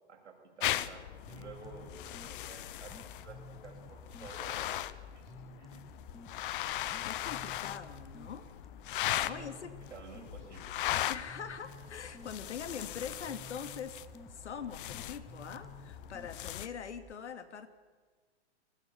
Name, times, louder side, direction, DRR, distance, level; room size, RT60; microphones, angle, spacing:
voice 1, 0.1-4.9 5.1-5.8 9.2-9.5 9.9-10.8, right 5 dB, 85° right, 2 dB, 7.5 m, -52 dB
sound 1, 0.6-16.7, left 13 dB, 50° left, 1.1 m, -39 dB
sound 2, 1.1-17.1, equal, ahead, 0.6 m, -53 dB
voice 2, 7.0-8.5 9.0-9.7 11.1-14.0 14.3-17.7, left 7 dB, 80° left, 10 dB, 2.7 m, -43 dB
29.5 x 20.0 x 7.2 m, 1.5 s
hypercardioid pair, 135°, 34 cm